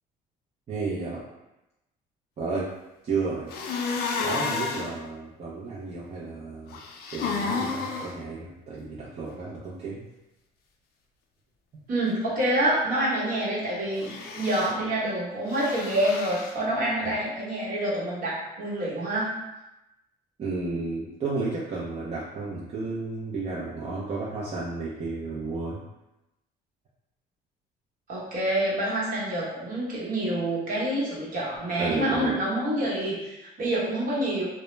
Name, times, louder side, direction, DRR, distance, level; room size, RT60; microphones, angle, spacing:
voice 1, 0.7-1.2 2.4-2.7 3.0-3.5 4.2-6.8 7.1-10.1 20.4-25.8 31.8-32.4, right 3 dB, 35° right, -7 dB, 0.5 m, -32 dB
sound 1, 3.5-4.9 6.7-8.1 14.0-14.7 15.5-16.5, left 4 dB, 70° left, 0.4 m, -31 dB
voice 2, 11.9-19.3 28.1-34.5, right 1 dB, 55° right, -6 dB, 1.0 m, -27 dB
2.1 x 2.0 x 3.1 m, 0.95 s
cardioid pair, 110°, 17 cm